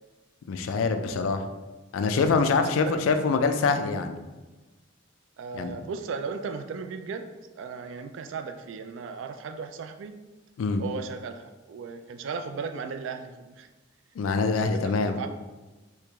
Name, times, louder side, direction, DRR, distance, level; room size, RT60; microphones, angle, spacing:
voice 1, 0.5-1.4 1.9-4.2 5.5-5.7 10.6-10.8 14.2-15.2, left 4 dB, 85° left, 7 dB, 0.4 m, -25 dB
voice 2, 5.4-7.3 7.6-10.2 10.8-13.7 14.4-15.3, right 5 dB, 70° right, 8 dB, 0.3 m, -36 dB
3.1 x 2.8 x 3.4 m, 1.2 s
head